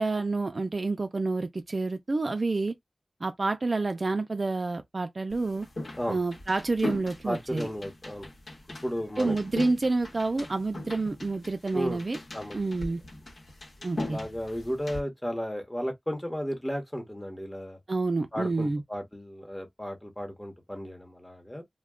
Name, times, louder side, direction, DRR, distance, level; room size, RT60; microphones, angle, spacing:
voice 1, 0.0-2.7 3.2-5.7 6.1-7.7 9.2-12.2 12.5-13.0 13.8-14.2 17.9-18.8, right 3 dB, 50° right, 0.3 m, -28 dB
sound 1, 5.3-15.0, left 2 dB, 70° left, 1.0 m, -39 dB
voice 2, 7.2-8.3 8.8-9.4 11.7-12.0 12.3-12.6 14.0-17.8 18.3-21.6, equal, 15° left, 0.9 m, -34 dB
2.3 x 2.1 x 3.5 m
wide cardioid pair, 90°, 0 cm